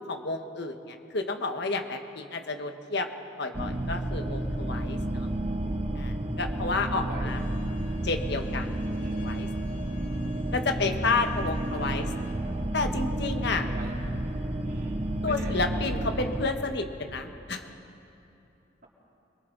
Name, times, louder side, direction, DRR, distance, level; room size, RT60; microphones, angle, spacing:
voice 1, 0.1-3.1 3.4-5.3 6.0-7.4 8.0-9.5 10.5-12.1 12.7-13.7 15.2-17.7, left 3 dB, 60° left, 5 dB, 1.4 m, -31 dB
sound 1, 3.5-16.5, right 1 dB, 35° right, 1.1 m, -31 dB
voice 2, 6.9-7.3 9.0-9.2 10.7-11.1 11.8-12.1 13.6-14.0 14.6-15.0 15.3-15.6, right 2 dB, 50° right, -3 dB, 3.8 m, -43 dB
Bowed string instrument, 7.3-12.3, left 3 dB, 40° left, 2.4 m, -53 dB
29.0 x 22.0 x 4.1 m, 2.8 s
head